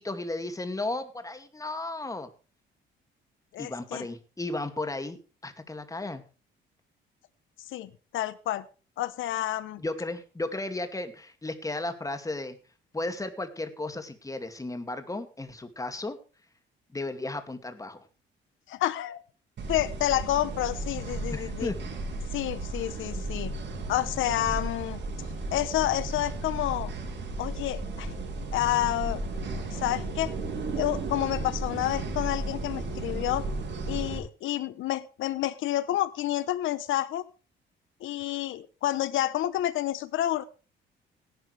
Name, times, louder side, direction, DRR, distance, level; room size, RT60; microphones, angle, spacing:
voice 1, 0.0-2.3 3.6-5.2 5.4-6.2 9.8-12.6 12.9-16.2 16.9-18.0 21.3-21.8, left 2 dB, 15° left, 8 dB, 2.3 m, -34 dB
voice 2, 3.5-4.1 7.7-8.6 9.0-9.8 18.7-19.2 19.7-21.7 22.3-23.5 23.9-26.9 27.4-28.1 28.5-29.2 29.7-30.3 30.7-33.5 33.9-37.2 38.0-40.4, left 14 dB, 80° left, 14 dB, 0.9 m, -29 dB
sound 1, 19.6-34.2, right 2 dB, 65° right, 6.0 m, -34 dB
17.5 x 11.0 x 3.4 m, 0.34 s
cardioid pair, 90°, 20 cm